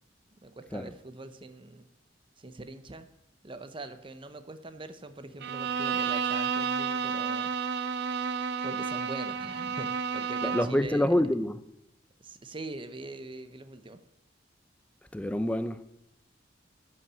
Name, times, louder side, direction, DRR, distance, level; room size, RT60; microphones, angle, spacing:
voice 1, 0.4-1.9 2.4-3.1 3.4-7.5 8.6-11.2 12.2-14.0, right 2 dB, 30° right, 0.8 m, -43 dB
Bowed string instrument, 5.4-10.9, right 6 dB, 65° right, 0.5 m, -31 dB
voice 2, 10.4-11.6 15.1-15.8, left 1 dB, 5° left, 0.5 m, -27 dB
11.0 x 6.0 x 9.0 m
head